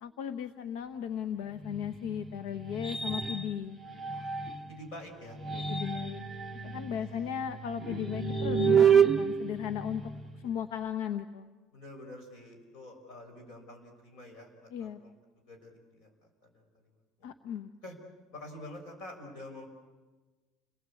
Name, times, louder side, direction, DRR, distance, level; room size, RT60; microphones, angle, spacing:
voice 1, 0.0-3.8 5.5-6.2 6.6-10.0 10.4-11.5 14.7-15.0 17.2-17.7, left 8 dB, 85° left, 10 dB, 1.0 m, -36 dB
sound 1, 1.6-4.8 5.3-10.5, right 6 dB, 10° right, 0.8 m, -29 dB
voice 2, 4.7-5.4 7.0-7.6 11.7-15.1 15.5-16.9 17.8-18.0 18.3-19.7, left 1 dB, 50° left, 4 dB, 5.8 m, -47 dB
29.5 x 19.5 x 8.5 m, 1.2 s
cardioid pair, 175°, 0 cm